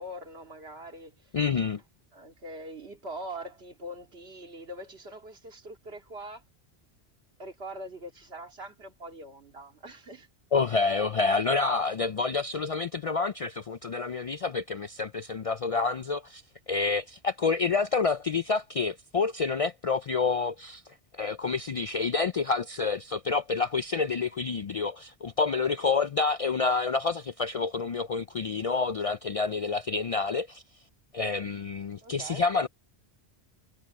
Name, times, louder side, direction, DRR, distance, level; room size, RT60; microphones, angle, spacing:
voice 1, 0.0-1.3 2.1-6.4 7.4-10.3 10.8-10.9 11.2-11.3 32.0-32.4, right 1 dB, 75° right, 2.6 m, -42 dB
voice 2, 1.3-1.8 10.5-16.4 16.7-20.8 21.1-30.6 31.1-32.7, left 4 dB, 55° left, 0.4 m, -28 dB
omnidirectional pair, 1.1 m